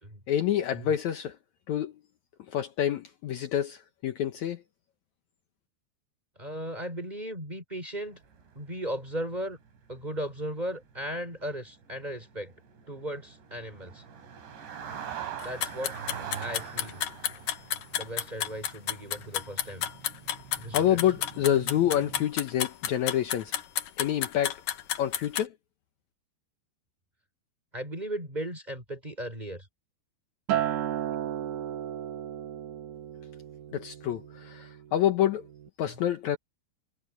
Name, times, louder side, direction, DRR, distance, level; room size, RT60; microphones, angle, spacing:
voice 1, 0.3-1.4 1.7-2.0 2.5-4.6 20.7-23.5 24.0-24.6 25.0-25.5 33.7-35.4 35.8-36.4, left 11 dB, 85° left, 1.6 m, -27 dB
voice 2, 6.4-8.2 8.5-9.6 9.9-12.5 12.9-14.0 15.4-15.9 16.4-17.1 17.9-19.9 20.6-21.0 27.7-29.7 35.9-36.0, right 1 dB, 10° right, 4.9 m, -36 dB
sound 1, 8.0-9.0 9.2-22.3, right 7 dB, 90° right, 6.3 m, -43 dB
sound 2, 15.4-25.4, left 11 dB, 65° left, 2.4 m, -31 dB
Acoustic guitar, 30.5-34.9 35.3-35.7, right 11 dB, 60° right, 2.4 m, -34 dB
omnidirectional pair, 4.9 m